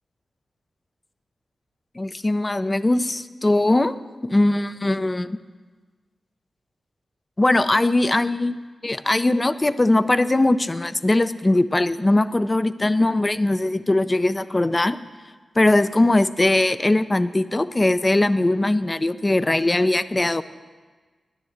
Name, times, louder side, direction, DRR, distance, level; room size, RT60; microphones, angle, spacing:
voice 1, 2.0-4.0 4.2-5.4 7.4-8.6 8.8-15.0 15.6-20.4, left 2 dB, 25° left, 13 dB, 0.5 m, -20 dB
10.0 x 10.0 x 8.0 m, 1.4 s
cardioid pair, 60°, 0 cm